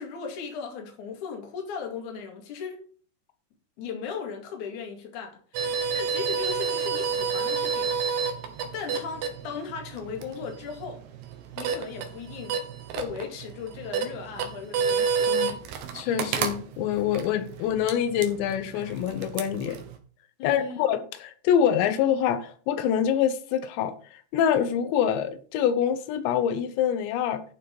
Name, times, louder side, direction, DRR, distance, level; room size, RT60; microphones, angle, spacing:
voice 1, 0.0-2.8 3.8-7.9 8.7-11.0 11.6-12.6 13.0-15.6 20.4-20.9, left 6 dB, 50° left, 3.2 m, -37 dB
sound 1, 5.5-20.0, right 6 dB, 75° right, 3.3 m, -30 dB
voice 2, 15.3-15.6 15.9-19.8 20.4-27.4, left 9 dB, 90° left, 3.2 m, -25 dB
12.0 x 5.5 x 5.3 m
omnidirectional pair, 5.0 m